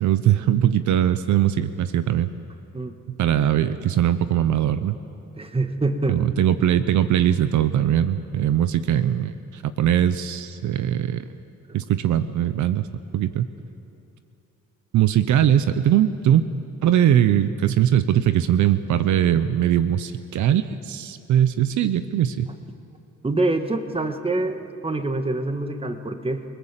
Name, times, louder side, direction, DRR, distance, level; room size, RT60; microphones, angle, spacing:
voice 1, 0.0-2.3 3.1-5.0 6.1-11.2 11.7-12.9 13.1-13.5 14.9-16.4 16.8-22.5, right 10 dB, 75° right, 12 dB, 0.9 m, -20 dB
voice 2, 5.4-6.2 23.2-26.5, right 2 dB, 20° right, 7 dB, 1.7 m, -25 dB
28.5 x 19.5 x 7.5 m, 2.8 s
cardioid pair, 90°, 30 cm